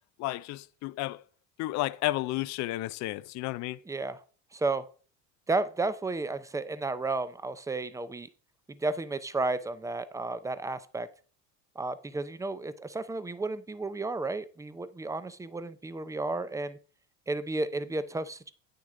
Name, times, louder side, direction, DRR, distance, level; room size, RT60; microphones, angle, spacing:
voice 1, 0.2-1.2 1.6-3.8, left 17 dB, 50° left, 0.5 m, -32 dB
voice 2, 3.9-4.2 4.5-4.9 5.5-8.3 8.7-11.1 11.8-16.8 17.3-18.5, right 3 dB, 10° right, 0.5 m, -32 dB
8.7 x 6.5 x 3.7 m
supercardioid pair, 95°, 38 cm